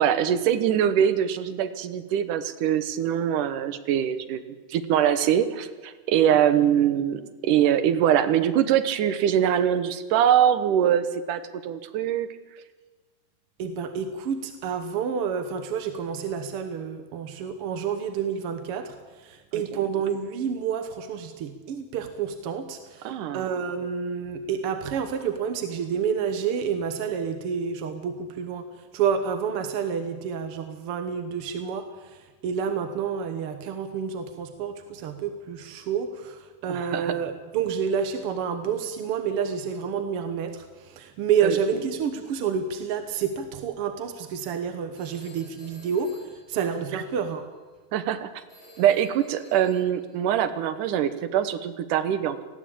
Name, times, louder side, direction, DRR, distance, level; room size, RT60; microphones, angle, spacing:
voice 1, 0.0-12.3 19.5-19.9 23.0-23.5 36.7-37.1 41.4-41.6 47.9-48.3 48.8-52.4, right 9 dB, 80° right, 11 dB, 2.6 m, -23 dB
voice 2, 13.6-46.2 46.5-47.5, right 7 dB, 60° right, 8 dB, 1.6 m, -29 dB
Telephone, 44.9-47.3 48.5-50.2, equal, 35° left, 6.4 m, -52 dB
19.5 x 15.5 x 8.6 m, 1.3 s
omnidirectional pair, 3.7 m